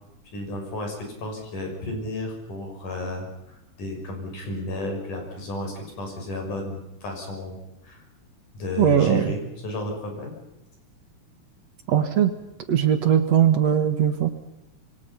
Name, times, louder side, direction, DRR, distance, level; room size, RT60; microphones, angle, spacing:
voice 1, 0.3-7.6 7.8-8.0 8.5-10.3, left 1 dB, 75° left, 2 dB, 7.8 m, -33 dB
voice 2, 8.8-9.3 11.9-12.3 12.7-14.3, right 9 dB, 60° right, 8 dB, 2.6 m, -20 dB
26.5 x 24.5 x 5.8 m, 0.87 s
omnidirectional pair, 3.7 m